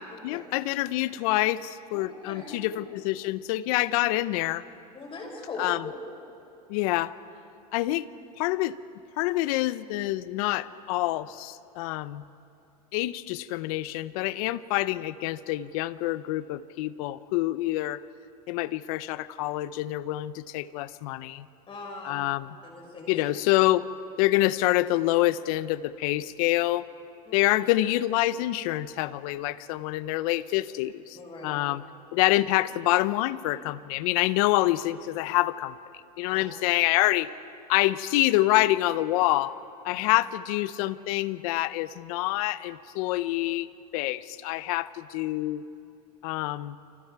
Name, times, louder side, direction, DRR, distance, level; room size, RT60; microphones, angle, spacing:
voice 1, 0.2-4.6 5.6-5.8 6.7-7.1 7.7-8.1 8.4-8.8 9.2-12.2 12.9-18.0 18.5-21.5 22.0-22.6 23.1-23.9 24.2-26.8 27.3-31.2 31.4-31.8 32.1-35.7 36.2-37.3 37.7-39.5 39.8-45.6 46.2-46.8, left 17 dB, 65° left, 16 dB, 0.8 m, -26 dB
voice 2, 1.9-2.6 4.9-6.0 21.7-22.2 22.6-23.2 27.2-27.5 31.1-31.6 36.3-36.4 39.9-40.0, left 2 dB, 25° left, 1 dB, 6.0 m, -40 dB
29.5 x 26.0 x 4.8 m, 2.7 s
supercardioid pair, 125°, 20 cm